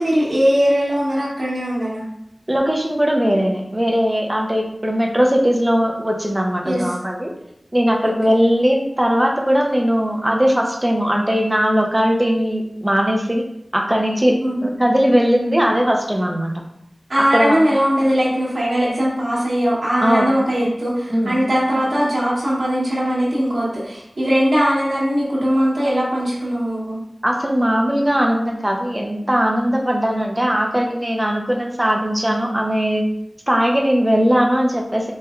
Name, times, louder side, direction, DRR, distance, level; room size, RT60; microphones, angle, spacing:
voice 1, 0.0-2.0 6.6-6.9 8.0-8.4 14.4-14.7 17.1-27.0, equal, 75° right, -8 dB, 1.1 m, -20 dB
voice 2, 2.5-7.3 7.7-13.4 13.7-16.5 17.2-17.6 20.0-20.3 21.1-21.4 27.2-33.0 33.5-35.1, equal, 20° right, 0 dB, 0.7 m, -19 dB
4.4 x 3.2 x 2.4 m, 0.80 s
wide cardioid pair, 55°, 0 cm